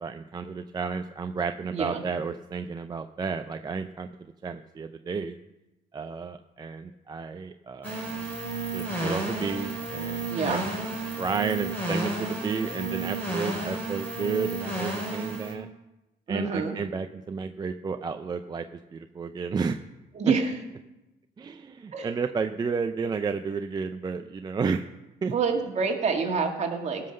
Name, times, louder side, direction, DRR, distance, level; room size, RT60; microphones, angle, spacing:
voice 1, 0.0-5.4 5.9-8.0 8.7-10.6 11.2-15.7 16.3-18.7 18.9-19.8 21.4-24.9 25.2-25.3, right 5 dB, 25° right, 7 dB, 0.5 m, -32 dB
voice 2, 1.7-2.0 10.3-10.6 16.3-16.7 20.1-20.5 21.9-22.1 25.3-27.0, right 5 dB, 40° right, 2 dB, 2.1 m, -27 dB
sound 1, 7.8-15.5, right 2 dB, 10° left, 4.8 m, -32 dB
17.0 x 5.7 x 6.5 m, 0.98 s
cardioid pair, 110°, 17 cm